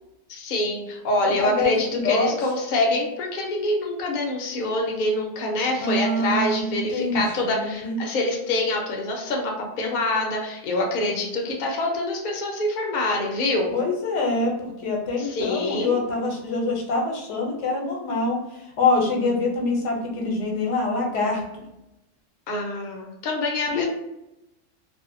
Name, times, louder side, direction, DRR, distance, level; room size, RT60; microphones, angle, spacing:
voice 1, 0.3-13.7 15.2-16.0 22.5-23.9, left 2 dB, 55° left, 0 dB, 0.6 m, -25 dB
voice 2, 1.2-2.3 5.8-8.0 13.7-21.4 23.7-23.9, left 3 dB, 80° left, 0 dB, 0.9 m, -25 dB
2.6 x 2.0 x 2.5 m, 0.91 s
omnidirectional pair, 1.2 m